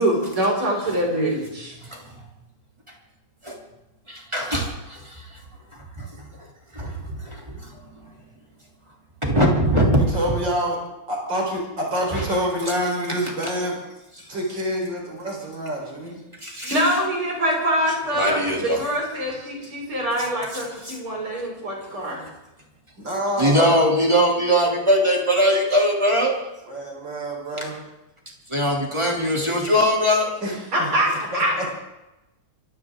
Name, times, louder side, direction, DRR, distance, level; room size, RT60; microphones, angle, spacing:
voice 1, 0.0-1.7 16.6-22.2 30.7-31.6, right 1 dB, 85° right, -2 dB, 6.4 m, -24 dB
voice 2, 4.1-5.4 6.0-6.3 6.7-7.7 8.0-8.1 9.2-10.0 10.3-10.4 12.1-12.3 16.4-16.8 18.2-18.8 20.5-20.6 20.9-21.0 23.4-26.4 27.6-27.7 28.5-30.3, equal, 15° right, -1 dB, 3.1 m, -21 dB
voice 3, 10.0-10.8 11.1-13.8 14.3-16.2 23.0-23.8 26.7-27.8 30.4-30.9 31.3-31.8, equal, 60° right, -1 dB, 5.1 m, -27 dB
25.0 x 15.0 x 3.8 m, 0.96 s
omnidirectional pair, 2.3 m